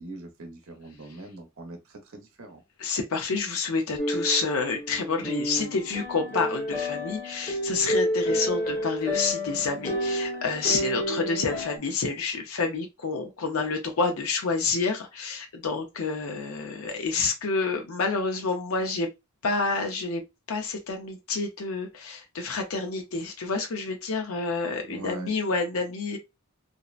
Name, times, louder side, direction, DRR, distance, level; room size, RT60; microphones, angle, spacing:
voice 1, 0.0-2.6 24.8-25.3, right 2 dB, 65° right, 0.7 m, -42 dB
voice 2, 2.8-19.1 19.4-20.2 20.5-26.2, left 4 dB, 70° left, 0.6 m, -28 dB
sound 1, 4.0-11.8, equal, 40° left, 0.9 m, -30 dB
2.6 x 2.1 x 2.3 m
head